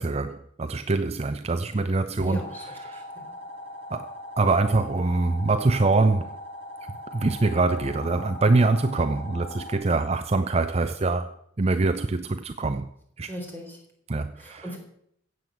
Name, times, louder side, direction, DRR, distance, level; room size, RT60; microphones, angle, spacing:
voice 1, 0.0-2.4 2.8-3.0 3.9-6.4 6.9-11.3 11.6-12.9 13.2-13.3 14.1-14.7, right 3 dB, 30° right, 0.5 m, -24 dB
voice 2, 2.2-2.6 2.9-3.4 13.3-13.8 14.4-14.8, equal, 10° left, 3.9 m, -37 dB
sound 1, 2.3-9.7, left 1 dB, 30° left, 6.2 m, -40 dB
16.0 x 7.8 x 7.7 m
head